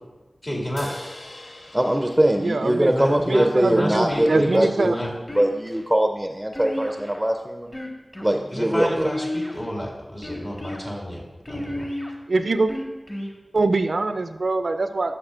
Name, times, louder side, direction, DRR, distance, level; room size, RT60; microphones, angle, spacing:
voice 1, 0.4-0.9 2.9-5.1 8.5-11.2 11.5-11.9, equal, 45° left, -2 dB, 1.9 m, -31 dB
sound 1, 0.8-4.2, left 1 dB, 65° left, 0.7 m, -44 dB
voice 2, 1.7-7.7 8.2-9.1, right 1 dB, 10° right, 4 dB, 0.5 m, -22 dB
voice 3, 2.4-5.0 12.3-12.7 13.5-15.2, right 3 dB, 75° right, 9 dB, 0.4 m, -23 dB
sound 2, 4.1-4.7 5.3-5.8 6.5-7.2 7.7-8.3 9.0-9.7 10.2-10.8 11.4-12.1 12.7-13.3, left 1 dB, 30° left, 1.3 m, -32 dB
9.8 x 6.7 x 2.4 m, 1.2 s
cardioid pair, 40°, 0 cm